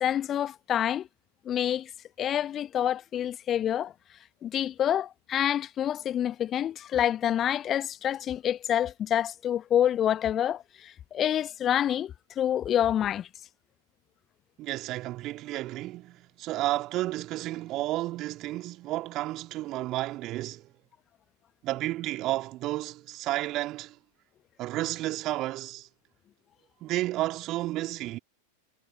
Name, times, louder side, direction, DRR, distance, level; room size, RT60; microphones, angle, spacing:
voice 1, 0.0-1.1 1.4-1.9 2.2-3.9 4.4-13.3, left 10 dB, 30° left, 1.0 m, -27 dB
voice 2, 14.6-20.7 21.6-24.0 24.6-25.9 26.8-28.2, right 16 dB, 35° right, 2.2 m, -32 dB
figure-of-eight pair, 90°, 0 cm